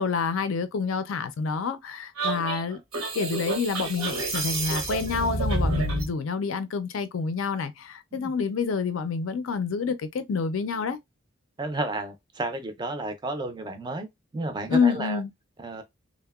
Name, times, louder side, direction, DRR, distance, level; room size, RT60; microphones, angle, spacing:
voice 1, 0.0-2.8 3.1-11.0 14.7-15.3, left 5 dB, 70° left, 0.4 m, -28 dB
sound 1, 2.2-6.1, right 2 dB, 85° right, 0.8 m, -28 dB
voice 2, 11.6-14.1 14.3-15.2 15.6-15.8, right 2 dB, 20° right, 0.4 m, -32 dB
2.7 x 2.1 x 2.2 m
head